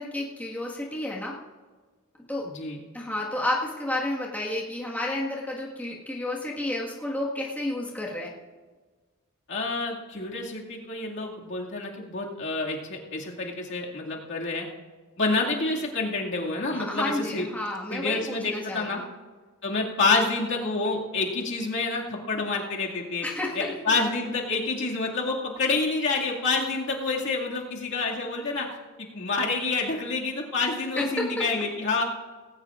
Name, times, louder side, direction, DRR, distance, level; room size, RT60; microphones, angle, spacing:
voice 1, 0.0-1.4 2.3-2.5 2.9-8.3 16.7-19.1 23.2-23.7 30.6-30.7 31.0-31.5, left 1 dB, 5° left, -4 dB, 1.7 m, -31 dB
voice 2, 2.4-2.8 9.5-14.7 15.2-17.5 17.9-19.0 19.6-23.2 23.6-32.0, left 3 dB, 55° left, -2 dB, 2.3 m, -28 dB
19.0 x 17.0 x 2.5 m, 1.4 s
head